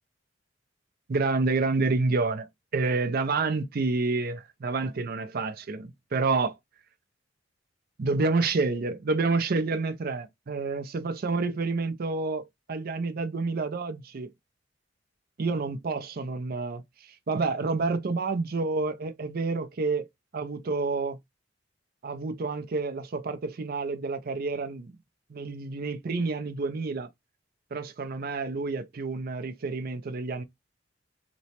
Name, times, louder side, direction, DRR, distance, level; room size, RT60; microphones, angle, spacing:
voice 1, 1.1-2.5 2.7-6.5 8.0-14.3 15.4-16.8 17.3-20.1 20.3-21.2 22.0-24.9 25.3-27.1 27.7-30.4, right 3 dB, 50° right, 0.5 m, -29 dB
3.0 x 2.1 x 2.8 m
head